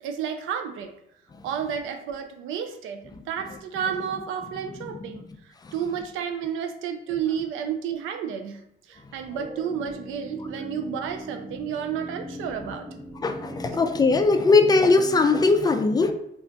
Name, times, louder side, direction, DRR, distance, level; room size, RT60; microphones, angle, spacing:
voice 1, 0.0-0.9 1.4-5.3 5.7-8.6 8.9-12.9, right 8 dB, 85° right, 6 dB, 0.4 m, -31 dB
sound 1, 9.3-15.2, right 1 dB, 20° right, 0.6 m, -39 dB
voice 2, 13.2-16.1, left 3 dB, 20° left, 7 dB, 0.3 m, -19 dB
2.4 x 2.2 x 3.8 m, 0.77 s
cardioid pair, 90°, 20 cm